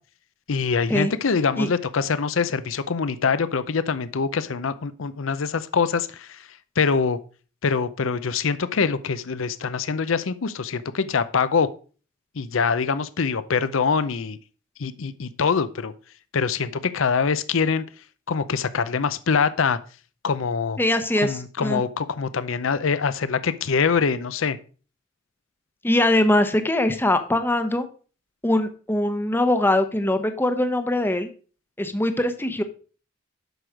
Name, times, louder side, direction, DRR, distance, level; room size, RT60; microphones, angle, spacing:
voice 1, 0.5-6.4 6.8-7.2 7.6-11.7 12.4-14.4 14.8-15.9 16.3-17.8 18.3-19.8 20.2-20.8 21.2-24.6, left 5 dB, 70° left, 14 dB, 0.6 m, -24 dB
voice 2, 20.8-21.8 25.8-27.9 28.4-31.3 31.8-32.6, left 1 dB, 10° left, 8 dB, 0.8 m, -22 dB
8.0 x 6.1 x 5.0 m, 0.38 s
head